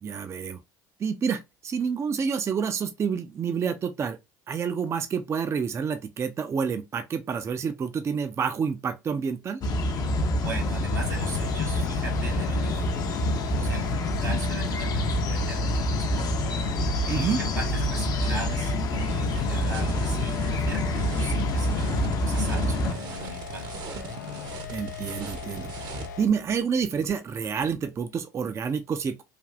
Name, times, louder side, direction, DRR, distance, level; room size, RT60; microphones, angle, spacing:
voice 1, 0.0-0.6 1.0-4.2 4.5-9.6 17.1-17.4 24.7-25.7 26.2-29.2, right 6 dB, 30° right, 0.4 m, -28 dB
sound 1, 9.6-22.9, left 1 dB, 40° left, 0.6 m, -26 dB
voice 2, 10.4-13.0 13.6-16.3 17.1-23.7, right 2 dB, 90° right, 1.1 m, -39 dB
sound 2, 10.9-26.4, left 6 dB, 85° left, 0.4 m, -39 dB
sound 3, 17.1-26.1, right 4 dB, 50° right, 0.8 m, -41 dB
3.3 x 2.4 x 2.3 m
hypercardioid pair, 65°, 9 cm